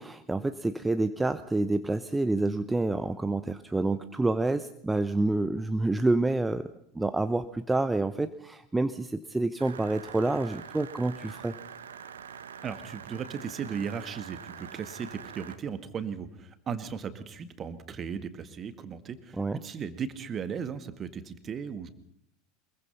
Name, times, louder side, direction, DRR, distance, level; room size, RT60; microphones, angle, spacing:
voice 1, 0.0-6.7 6.9-11.5 19.4-19.6, right 2 dB, 10° right, 11 dB, 0.9 m, -28 dB
sound 1, 9.6-15.6, right 7 dB, 70° right, 1.4 m, -45 dB
voice 2, 12.6-21.9, right 7 dB, 30° right, 11 dB, 1.8 m, -36 dB
24.5 x 22.0 x 5.6 m, 0.72 s
figure-of-eight pair, 80°, 0 cm